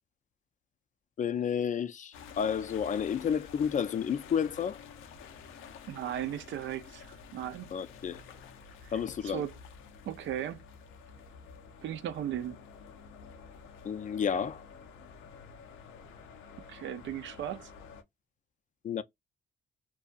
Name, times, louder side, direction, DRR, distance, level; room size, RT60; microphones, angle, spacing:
voice 1, 1.2-4.8 7.7-8.2 8.9-9.4 13.8-14.6 18.8-19.0, left 7 dB, 40° left, 0.4 m, -31 dB
sound 1, 2.1-18.0, left 6 dB, 85° left, 0.6 m, -50 dB
voice 2, 5.9-7.7 8.8-9.5 10.0-10.6 11.8-12.6 16.7-17.7, right 10 dB, 70° right, 0.5 m, -37 dB
2.6 x 2.3 x 2.3 m
cardioid pair, 90°, 20 cm